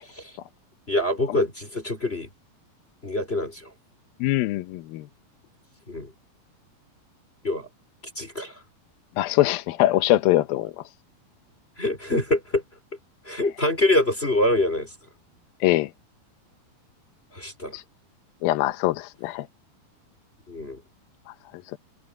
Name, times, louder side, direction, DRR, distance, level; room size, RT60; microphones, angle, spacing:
voice 1, 0.0-0.4 0.9-2.3 3.0-3.7 5.9-6.1 7.4-7.7 8.2-8.6 11.8-12.6 13.2-14.9 17.3-17.8 20.5-20.8, left 1 dB, 15° left, 3.9 m, -25 dB
voice 2, 4.2-5.1 9.2-10.8 15.6-15.9 17.7-17.8 18.4-19.5 21.7-21.8, left 16 dB, 85° left, 2.7 m, -23 dB
omnidirectional pair, 4.1 m